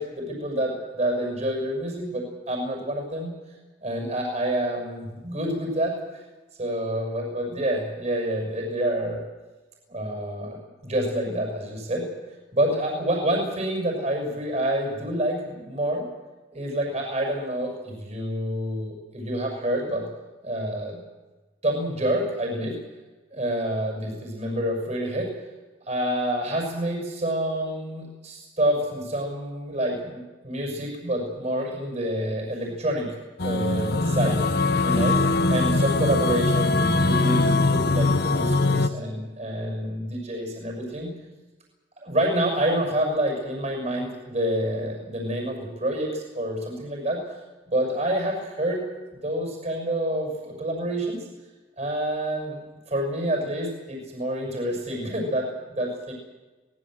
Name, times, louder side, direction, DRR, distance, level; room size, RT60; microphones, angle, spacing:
voice 1, 0.0-3.3 3.8-5.9 6.6-9.2 9.9-12.1 12.5-16.0 16.5-20.1 20.4-21.0 21.6-22.8 23.3-25.3 25.9-33.2 33.4-34.4 34.8-35.2 35.5-41.1 42.0-47.2 47.7-48.8 49.2-51.3 51.8-52.6 52.9-56.1, right 1 dB, 35° right, 2 dB, 6.7 m, -27 dB
sound 1, 33.4-38.9, left 3 dB, 55° left, 1.1 m, -22 dB
23.5 x 20.0 x 7.9 m, 1.2 s
head